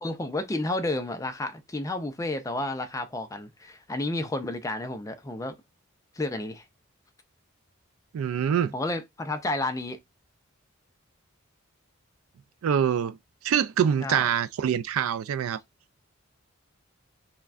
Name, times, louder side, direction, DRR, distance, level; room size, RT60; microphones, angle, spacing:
voice 1, 0.0-5.5 6.2-6.6 8.7-10.0 14.0-14.2, left 2 dB, 15° left, 0.4 m, -31 dB
voice 2, 8.1-8.7 12.6-13.2 13.4-15.6, right 8 dB, 85° right, 0.3 m, -25 dB
5.7 x 2.2 x 2.4 m
head